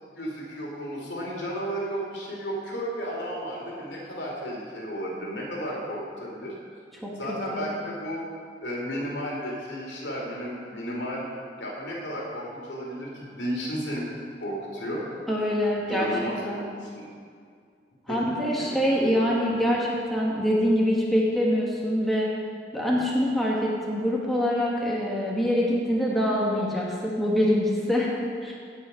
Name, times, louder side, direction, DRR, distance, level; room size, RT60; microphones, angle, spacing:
voice 1, 0.1-6.5 7.2-8.2 8.6-11.2 11.6-14.0 14.4-15.0 15.9-17.0 18.1-18.2 18.6-18.7, equal, 65° left, -3 dB, 2.8 m, -33 dB
voice 2, 15.3-16.1 16.4-16.6 18.1-22.3 22.7-28.1 28.4-28.5, equal, ahead, -5 dB, 1.3 m, -24 dB
16.5 x 5.6 x 5.6 m, 2.2 s
head